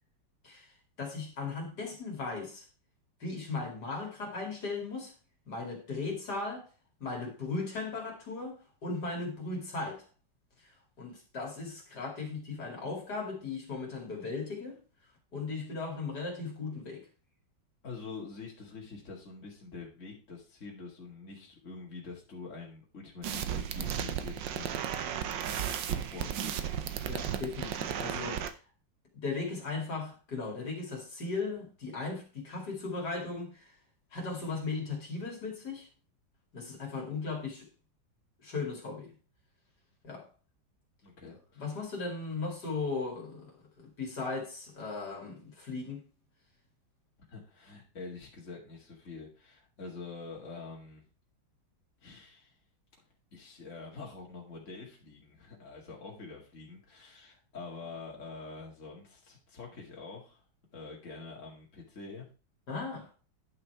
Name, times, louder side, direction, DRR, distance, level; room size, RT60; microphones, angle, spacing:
voice 1, 1.0-2.6 3.2-5.1 5.5-6.7 7.0-10.0 10.6-10.7 11.0-14.8 15.3-17.1 27.1-28.6 29.1-33.7 34.1-35.9 36.5-37.7 38.4-39.1 40.0-40.3 41.6-46.0 62.7-63.1, left 3 dB, 60° left, 2.8 m, -37 dB
voice 2, 17.8-24.9 25.8-26.7 41.0-41.7 47.3-51.0 52.0-52.5 53.3-60.4 60.7-62.3, left 4 dB, 40° left, 2.5 m, -46 dB
sound 1, 23.2-28.5, right 9 dB, 75° right, 1.5 m, -34 dB
10.0 x 5.7 x 4.7 m
omnidirectional pair, 2.0 m